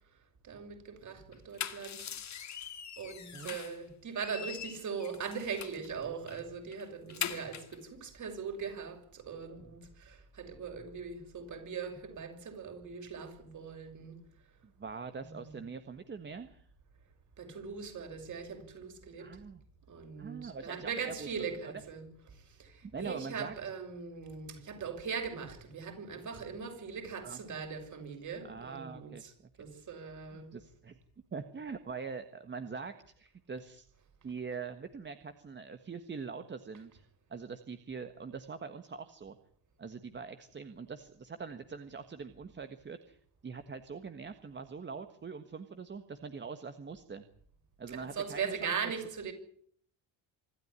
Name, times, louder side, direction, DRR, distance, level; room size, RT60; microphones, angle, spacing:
voice 1, 0.4-2.1 3.0-14.1 15.2-15.6 17.4-19.4 19.9-29.3 29.6-30.5 47.9-49.3, right 6 dB, 40° right, 6.5 m, -40 dB
sound 1, 1.3-3.8 4.2-5.9 6.3-6.4 6.7-7.8, left 8 dB, 40° left, 2.2 m, -41 dB
voice 2, 14.6-16.7 19.2-19.6 20.2-21.7 22.8-23.5 27.2-27.4 28.4-29.2 29.7-29.9 30.3-31.0 31.3-33.9 34.2-39.4 39.8-43.2 43.4-47.3 47.8-48.9, right 5 dB, 25° right, 1.5 m, -43 dB
25.5 x 13.0 x 9.8 m
cardioid pair, 130°, 44 cm